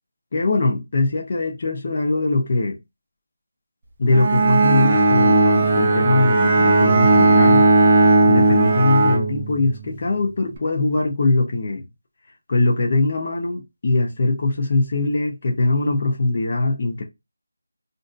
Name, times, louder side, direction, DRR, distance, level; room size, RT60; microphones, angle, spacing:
voice 1, 0.3-2.8 4.0-7.7 8.3-11.8 12.5-17.0, left 2 dB, 25° left, 0.7 m, -21 dB
Bowed string instrument, 4.1-9.9, right 2 dB, 15° right, 0.6 m, -16 dB
3.3 x 2.6 x 2.4 m
figure-of-eight pair, 180°, 0 cm